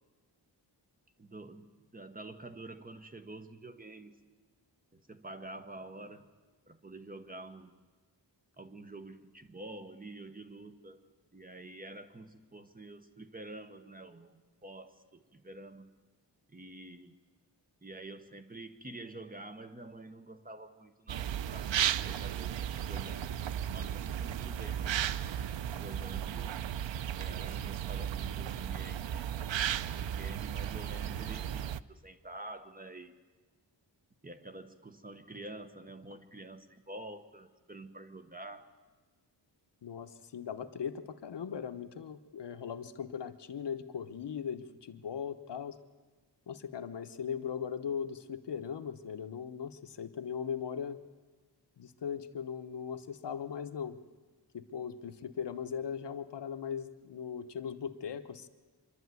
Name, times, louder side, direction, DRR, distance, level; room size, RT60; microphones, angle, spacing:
voice 1, 1.2-4.2 4.9-6.3 6.7-7.7 8.6-11.0 11.3-15.9 16.5-17.2 17.8-23.4 23.7-25.0 25.7-26.5 27.2-29.3 30.0-33.2 34.2-38.7, right 2 dB, 20° right, 8 dB, 1.0 m, -48 dB
sound 1, 21.1-31.8, right 10 dB, 90° right, 0.6 m, -35 dB
voice 2, 39.8-45.8 46.5-51.0 51.8-54.0 54.5-58.5, left 7 dB, 70° left, 9 dB, 1.1 m, -39 dB
25.0 x 11.5 x 9.5 m, 1.3 s
wide cardioid pair, 155°, 44 cm